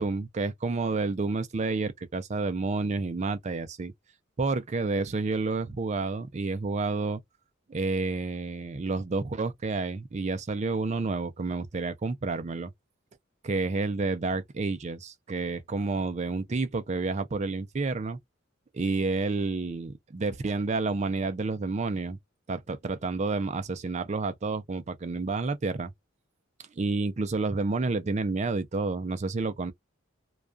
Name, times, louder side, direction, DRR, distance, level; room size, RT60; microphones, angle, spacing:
voice 1, 0.0-3.9 4.4-7.2 7.7-12.7 13.4-18.2 18.7-22.2 22.5-25.9 26.8-29.7, right 3 dB, 35° right, 0.4 m, -30 dB
2.3 x 2.2 x 2.4 m
head